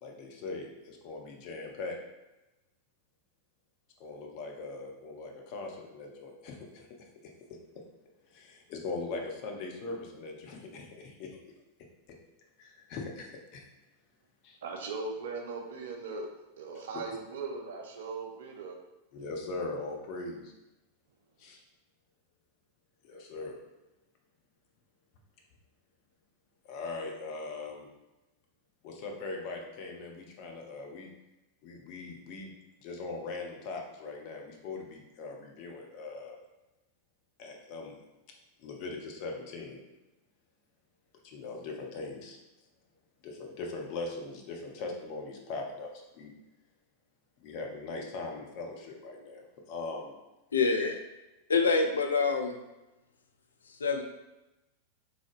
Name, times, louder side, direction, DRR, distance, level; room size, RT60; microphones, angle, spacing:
voice 1, 0.0-2.0 4.0-7.3 8.3-11.4 12.6-13.6 14.4-14.6 19.1-20.5 21.4-21.6 23.0-23.6 26.6-27.9 28.8-31.1 31.6-32.5 32.8-36.4 37.4-38.0 38.6-39.8 41.2-42.4 43.2-46.3 47.4-50.1 50.8-50.9, left 3 dB, 45° left, 1 dB, 0.7 m, -40 dB
voice 2, 14.6-16.3 16.6-18.8, right 4 dB, 60° right, 2 dB, 0.6 m, -39 dB
voice 3, 50.5-50.9 51.5-52.6 53.8-54.0, left 4 dB, 70° left, 5 dB, 0.4 m, -26 dB
3.7 x 3.3 x 2.5 m, 1.0 s
figure-of-eight pair, 90°, 0 cm